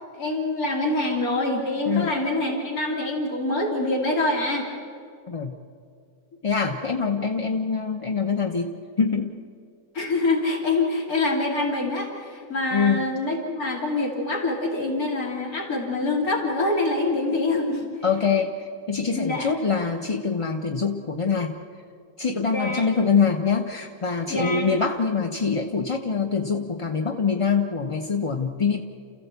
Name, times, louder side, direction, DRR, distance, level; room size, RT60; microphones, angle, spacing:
voice 1, 0.1-4.7 9.9-17.9 19.1-19.5 22.5-22.9 24.3-24.7, left 2 dB, 70° left, 0 dB, 3.3 m, -25 dB
voice 2, 6.4-9.4 12.7-13.0 18.0-21.6 22.2-28.8, left 5 dB, 25° left, 3 dB, 0.8 m, -24 dB
29.0 x 15.0 x 8.2 m, 2.4 s
omnidirectional pair, 1.6 m